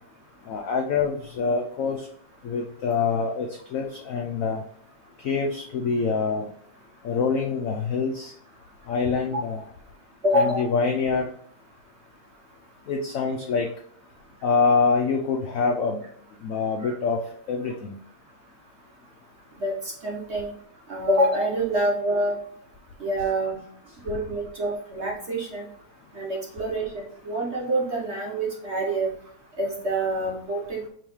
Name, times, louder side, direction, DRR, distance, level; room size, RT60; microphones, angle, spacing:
voice 1, 0.5-2.1 2.4-4.6 5.2-6.5 7.0-8.3 8.9-9.6 10.3-11.3 12.9-13.7 14.4-16.0 16.4-17.2 17.5-18.0, left 5 dB, 75° left, 3 dB, 0.7 m, -25 dB
voice 2, 10.2-10.6 16.8-16.9 19.6-20.5 20.9-22.3 23.0-23.6 24.0-25.6 26.1-29.1 29.6-30.8, right 1 dB, 50° right, -2 dB, 0.9 m, -26 dB
5.3 x 3.1 x 3.0 m, 0.64 s
omnidirectional pair, 2.0 m